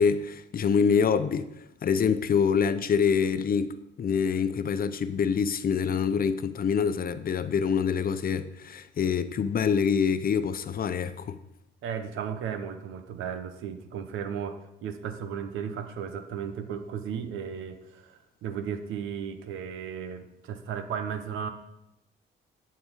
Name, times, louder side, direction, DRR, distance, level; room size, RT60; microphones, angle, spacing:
voice 1, 0.0-1.5 1.8-11.4, left 6 dB, 45° left, 0.7 m, -25 dB
voice 2, 11.8-21.5, right 7 dB, 90° right, 1.1 m, -35 dB
12.0 x 4.3 x 7.4 m
cardioid pair, 90°, 20 cm